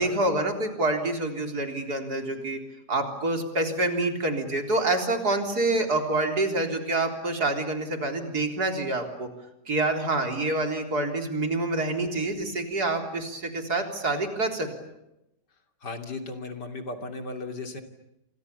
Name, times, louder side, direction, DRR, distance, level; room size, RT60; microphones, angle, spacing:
voice 1, 0.0-2.6 2.9-9.3 9.7-14.7, right 2 dB, 65° right, 4 dB, 4.3 m, -27 dB
voice 2, 15.8-17.8, left 3 dB, 80° left, 5 dB, 3.5 m, -36 dB
28.5 x 27.5 x 6.9 m, 0.86 s
omnidirectional pair, 1.8 m